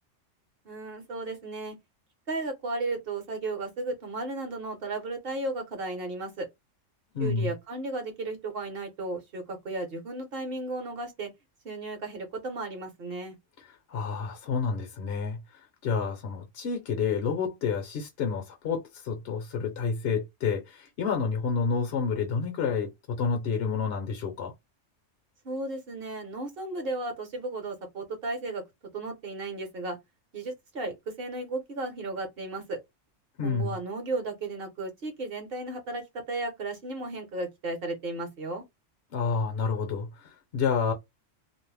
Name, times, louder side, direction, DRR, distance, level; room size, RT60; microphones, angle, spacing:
voice 1, 0.6-1.7 2.3-6.5 7.2-11.3 11.6-13.4 25.4-28.6 28.9-30.0 30.3-32.8 33.4-38.6, right 2 dB, 50° right, 1.0 m, -34 dB
voice 2, 7.1-7.5 13.9-15.4 15.8-24.5 33.4-33.7 39.1-40.9, left 5 dB, 60° left, 0.8 m, -29 dB
2.6 x 2.0 x 3.2 m
omnidirectional pair, 1.3 m